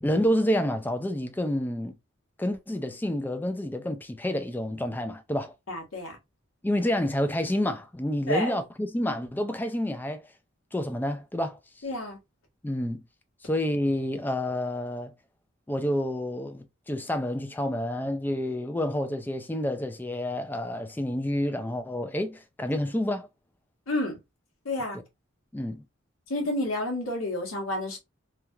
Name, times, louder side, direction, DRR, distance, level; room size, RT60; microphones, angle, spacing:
voice 1, 0.0-1.9 2.4-5.5 6.6-10.2 10.7-11.6 12.6-13.0 13.4-15.1 15.7-23.3 25.5-25.8, left 1 dB, 10° left, 0.3 m, -29 dB
voice 2, 5.7-6.2 8.3-8.5 11.8-12.2 23.9-24.2 24.6-25.0 26.3-28.0, left 1 dB, 85° left, 1.4 m, -30 dB
3.2 x 2.3 x 2.7 m
head